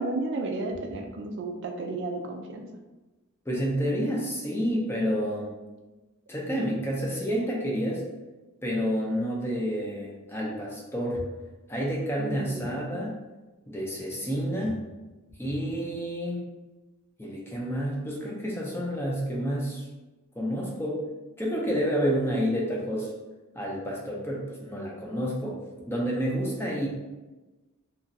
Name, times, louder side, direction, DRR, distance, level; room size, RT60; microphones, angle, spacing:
voice 1, 0.0-2.7 12.2-13.0, right 2 dB, 55° right, 3 dB, 0.3 m, -33 dB
voice 2, 3.5-5.5 6.3-8.0 8.6-11.2 11.7-13.2 13.7-14.8 15.4-16.4 17.2-19.8 20.4-21.0 21.4-23.1 23.5-25.6 25.9-26.9, equal, 10° left, -3 dB, 0.5 m, -29 dB
2.9 x 2.4 x 2.6 m, 1.1 s
head